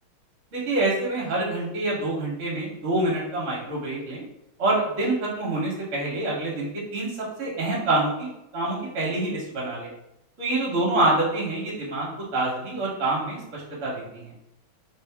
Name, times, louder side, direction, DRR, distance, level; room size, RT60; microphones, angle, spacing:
voice 1, 0.5-4.2 4.6-7.1 7.4-9.9 10.4-14.3, right 2 dB, 45° right, -4 dB, 1.1 m, -26 dB
3.4 x 2.6 x 3.4 m, 0.84 s
omnidirectional pair, 2.3 m